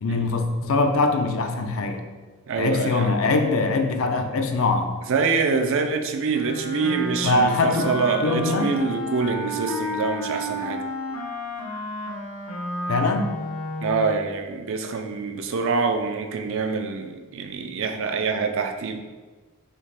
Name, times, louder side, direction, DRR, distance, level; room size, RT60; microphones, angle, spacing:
voice 1, 0.0-2.1 2.6-4.9 7.2-7.9 8.2-8.7 12.9-13.3, left 3 dB, 70° left, 6 dB, 0.5 m, -22 dB
voice 2, 2.5-3.1 5.1-10.8 13.8-19.0, right 4 dB, 65° right, 6 dB, 0.4 m, -25 dB
Wind instrument woodwind instrument, 6.3-14.2, left 1 dB, 85° left, 0.9 m, -31 dB
6.4 x 2.4 x 3.3 m, 1.3 s
head